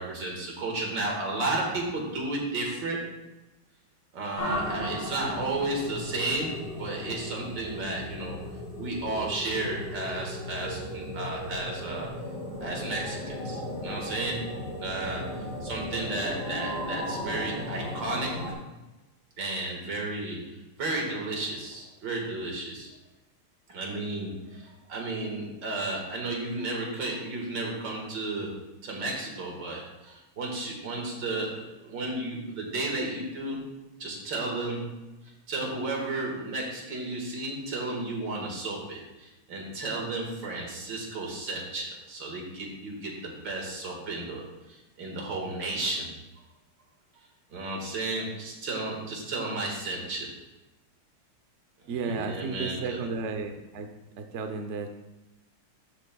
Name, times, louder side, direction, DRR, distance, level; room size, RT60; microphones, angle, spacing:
voice 1, 0.0-3.2 4.1-8.4 8.8-12.1 12.6-18.4 19.4-22.9 23.7-33.6 34.0-35.0 35.5-46.1 47.5-50.3 51.8-53.0, right 2 dB, 60° right, -1 dB, 2.4 m, -33 dB
Soundscape Radio Geiger, 4.4-18.5, left 1 dB, 60° left, 3.4 m, -36 dB
voice 2, 51.9-53.9 54.2-54.9, right 4 dB, 85° right, 6 dB, 0.6 m, -33 dB
12.5 x 7.5 x 2.3 m, 1.0 s
omnidirectional pair, 2.3 m